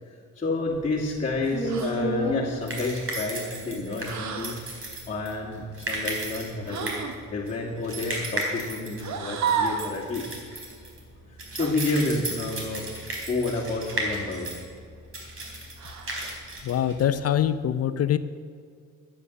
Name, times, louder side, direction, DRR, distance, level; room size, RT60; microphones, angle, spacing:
voice 1, 0.4-4.6 5.1-6.9 7.3-10.3 11.5-12.9 13.3-14.5, left 3 dB, 25° left, -6 dB, 2.3 m, -29 dB
sound 1, 0.7-17.5, right 1 dB, 45° right, 4.1 m, -34 dB
sound 2, 1.7-2.1 4.0-4.6 6.7-7.2 9.0-9.9 11.6-11.8 13.9-14.4 15.8-16.3, right 6 dB, 65° right, 1.3 m, -31 dB
voice 2, 16.6-18.2, left 10 dB, 55° left, 12 dB, 0.7 m, -24 dB
12.5 x 9.9 x 6.5 m, 2.2 s
cardioid pair, 90°, 30 cm